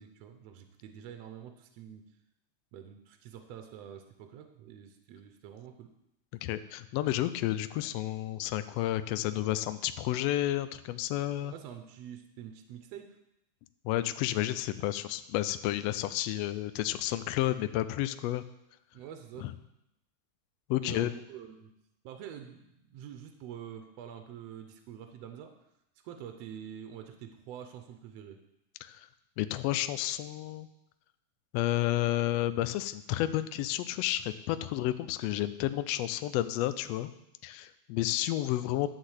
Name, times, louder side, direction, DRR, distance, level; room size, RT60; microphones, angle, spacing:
voice 1, 0.0-2.0 2.7-5.9 11.4-13.2 18.9-19.5 20.8-21.7 22.0-25.5 26.0-28.4, right 9 dB, 70° right, 6 dB, 1.7 m, -46 dB
voice 2, 6.4-11.5 13.8-18.4 19.4-19.5 20.7-21.1 28.8-29.1 29.4-30.7 31.5-37.1 37.4-38.9, left 14 dB, 85° left, 11 dB, 1.4 m, -31 dB
12.0 x 4.1 x 8.0 m, 0.86 s
omnidirectional pair, 3.4 m